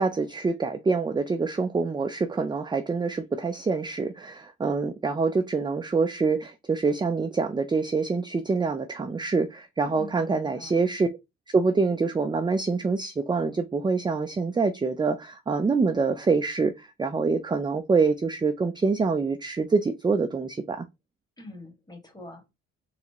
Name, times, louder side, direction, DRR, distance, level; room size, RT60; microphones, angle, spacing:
voice 1, 0.0-11.1 11.5-20.9, right 4 dB, 15° right, 0.4 m, -25 dB
voice 2, 9.9-10.8 21.4-22.5, left 2 dB, 15° left, 1.7 m, -44 dB
4.2 x 4.0 x 2.9 m
cardioid pair, 90°, 30 cm